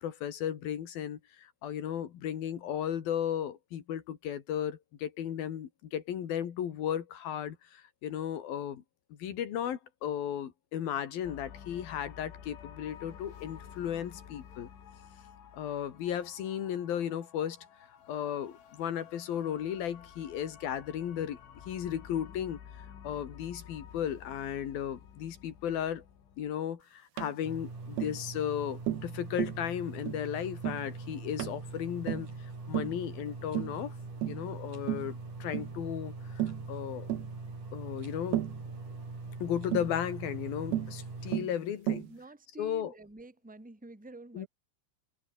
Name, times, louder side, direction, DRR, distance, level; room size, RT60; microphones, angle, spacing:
voice 1, 0.0-8.8 9.2-14.7 15.5-17.6 18.1-21.4 21.7-22.6 23.0-26.0 26.4-32.3 32.7-33.9 34.3-37.1 37.7-38.5 39.4-42.1 42.6-42.9 44.3-44.5, left 9 dB, 55° left, 3.5 m, -35 dB
sound 1, 11.2-26.5, left 8 dB, 80° left, 5.9 m, -51 dB
Tap, 27.2-27.4 28.0-28.2 28.9-29.1 29.4-29.6 30.1-30.3 30.6-30.9 31.4-31.6 32.1-32.3 32.7-33.0 33.6-33.8 34.2-34.5 34.9-35.1 35.5-35.7 36.4-36.7 37.1-37.3 38.3-38.6 39.7-39.9 40.7-41.0 41.3-41.6 41.9-42.1, right 13 dB, 70° right, 3.1 m, -33 dB
sound 2, 27.4-41.4, right 3 dB, 40° right, 9.2 m, -42 dB
voice 2, 42.1-44.5, right 2 dB, ahead, 2.5 m, -49 dB
omnidirectional pair, 5.4 m